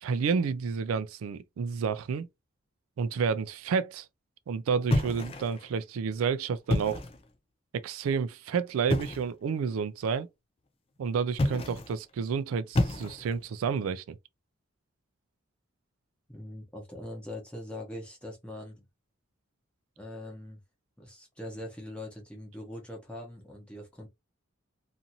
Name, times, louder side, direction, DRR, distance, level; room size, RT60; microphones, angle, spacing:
voice 1, 0.0-2.3 3.0-4.1 4.5-7.0 7.7-10.3 11.0-14.2, right 6 dB, 85° right, 0.3 m, -30 dB
sound 1, 4.9-5.7 6.6-7.3 8.9-9.3 11.3-12.0 12.7-13.5, left 1 dB, 25° left, 0.4 m, -29 dB
voice 2, 16.3-18.8 20.0-20.6 21.0-24.1, left 1 dB, 5° left, 0.8 m, -42 dB
2.6 x 2.5 x 2.7 m
head